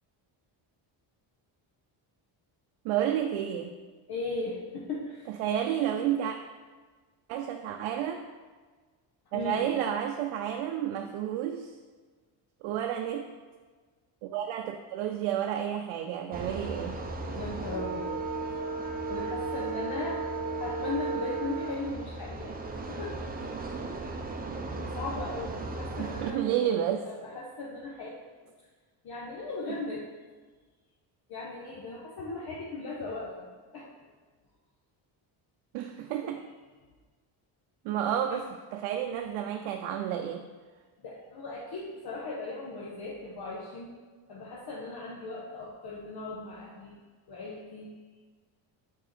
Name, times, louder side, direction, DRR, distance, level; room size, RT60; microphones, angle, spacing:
voice 1, 2.8-3.8 5.4-6.4 7.3-8.2 9.3-11.7 12.6-13.3 14.2-17.0 26.0-27.1 35.7-36.4 37.8-40.4, right 10 dB, 80° right, 4 dB, 0.6 m, -31 dB
voice 2, 4.1-5.3 9.3-9.7 17.3-18.2 19.1-23.2 24.8-26.4 27.0-28.2 29.0-30.1 31.3-34.1 38.3-38.4 41.0-43.9 44.3-47.0 47.3-47.9, left 2 dB, 50° left, -4 dB, 1.1 m, -38 dB
sound 1, 16.3-26.3, right 3 dB, 20° right, 0.6 m, -35 dB
5.5 x 4.7 x 4.1 m, 1.4 s
cardioid pair, 100°, 48 cm